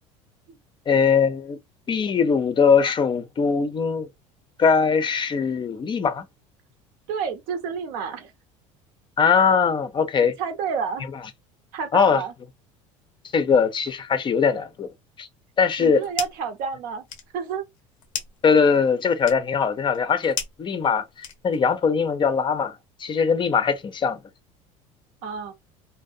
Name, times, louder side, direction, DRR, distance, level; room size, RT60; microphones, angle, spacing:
voice 1, 0.9-1.6 1.9-4.1 4.6-6.2 9.2-10.3 11.9-12.2 13.3-14.9 15.2-15.3 15.6-16.0 18.4-21.0 21.4-24.2, left 6 dB, 30° left, 0.5 m, -21 dB
voice 2, 7.1-8.3 10.2-11.1 11.7-12.3 15.8-17.1 17.3-17.6 25.2-25.5, right 6 dB, 65° right, 0.7 m, -29 dB
sound 1, 15.7-16.5 16.9-21.8, left 8 dB, 90° left, 0.5 m, -36 dB
2.5 x 2.0 x 2.5 m
hypercardioid pair, 80°, 16 cm